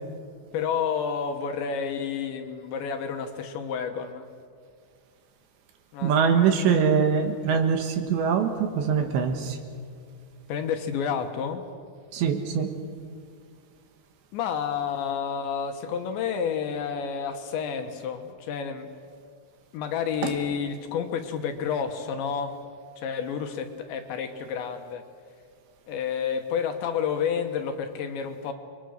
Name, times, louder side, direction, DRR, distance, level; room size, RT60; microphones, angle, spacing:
voice 1, 0.5-4.3 5.9-6.1 10.5-11.6 14.3-18.9 19.7-22.6 23.0-25.0 25.9-28.5, left 7 dB, 70° left, 6 dB, 3.2 m, -30 dB
voice 2, 6.0-9.6 12.1-12.7 20.2-20.4, right 6 dB, 70° right, 6 dB, 3.4 m, -23 dB
29.5 x 23.0 x 6.5 m, 2.2 s
omnidirectional pair, 5.9 m